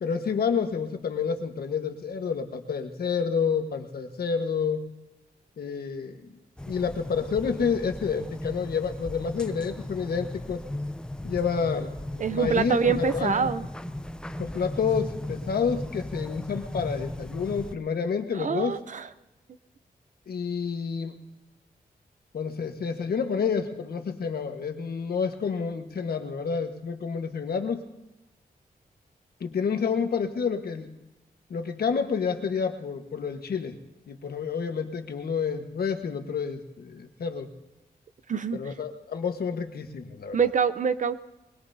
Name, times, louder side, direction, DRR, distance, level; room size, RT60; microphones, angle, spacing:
voice 1, 0.0-4.9 5.6-6.3 6.7-10.6 11.2-13.3 14.4-18.8 20.3-21.1 22.3-27.8 29.4-30.9 31.5-33.8 34.1-37.5 38.5-40.5, left 6 dB, 75° left, 5 dB, 1.4 m, -29 dB
sound 1, 6.6-17.8, left 1 dB, 5° left, 0.6 m, -37 dB
voice 2, 12.2-13.7 18.3-19.1 38.3-38.7 40.3-41.2, right 6 dB, 55° right, 13 dB, 0.6 m, -25 dB
22.5 x 21.5 x 2.7 m, 1.0 s
wide cardioid pair, 140°, 16 cm